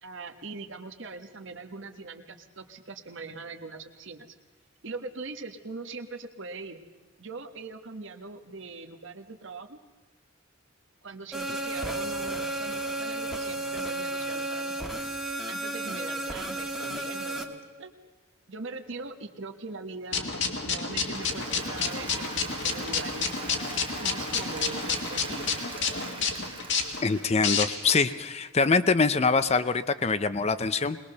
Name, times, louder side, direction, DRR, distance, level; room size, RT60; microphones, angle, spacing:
voice 1, 0.0-4.3 4.8-6.8 7.2-9.8 11.0-14.8 15.5-17.9 18.5-23.4 24.0-25.7, right 3 dB, 65° right, 6 dB, 1.4 m, -41 dB
sound 1, 11.3-17.4, right 2 dB, 5° right, 1.5 m, -33 dB
sound 2, 20.1-28.0, left 5 dB, 60° left, 1.9 m, -30 dB
Applause, 20.9-28.1, right 4 dB, 25° right, 1.7 m, -41 dB
voice 2, 27.0-31.0, left 4 dB, 30° left, 13 dB, 0.6 m, -24 dB
21.0 x 20.5 x 6.7 m, 1.2 s
head